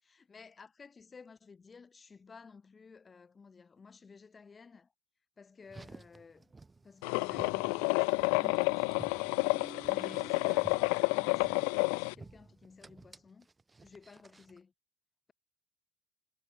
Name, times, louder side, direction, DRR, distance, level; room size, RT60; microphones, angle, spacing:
voice 1, 0.0-4.9 5.4-6.5 6.8-9.4 9.9-13.5 13.8-14.7, left 5 dB, 20° left, 5.6 m, -54 dB
Car, 5.6-14.6, right 3 dB, 15° right, 1.9 m, -53 dB
sound 1, 7.0-12.1, left 40 dB or more, 80° left, 0.4 m, -30 dB
cardioid pair, 130°, 0 cm